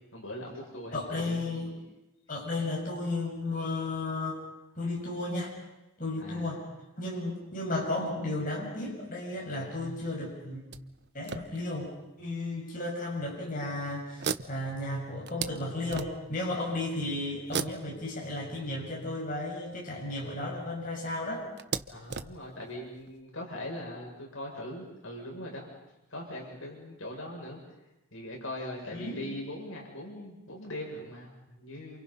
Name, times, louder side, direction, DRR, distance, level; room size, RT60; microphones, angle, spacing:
voice 1, 0.1-1.4 6.2-6.5 21.9-25.7 26.1-27.6 28.1-32.0, left 1 dB, 70° left, 0 dB, 7.2 m, -40 dB
voice 2, 0.9-1.7 2.3-4.4 4.8-5.5 6.0-6.6 7.0-10.7 11.1-11.9 12.2-21.5 28.9-29.2, left 2 dB, 40° left, -3 dB, 6.9 m, -34 dB
sound 1, 10.7-12.1 12.8-12.9 13.3-13.5 14.2-16.5 17.4-19.1 20.3-20.4 20.7-20.8 21.6-23.2, right 6 dB, 55° right, 0.8 m, -38 dB
28.5 x 28.5 x 5.7 m, 0.95 s
head